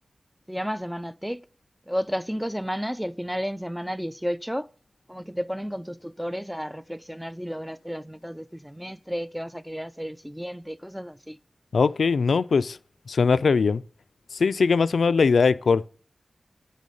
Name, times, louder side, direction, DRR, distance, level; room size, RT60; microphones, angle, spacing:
voice 1, 0.5-1.4 1.9-4.7 5.1-11.4, equal, ahead, 0.4 m, -32 dB
voice 2, 11.7-12.8 13.1-13.8 14.3-15.9, left 5 dB, 85° left, 0.3 m, -21 dB
9.2 x 5.4 x 6.3 m
wide cardioid pair, 105°, 0 cm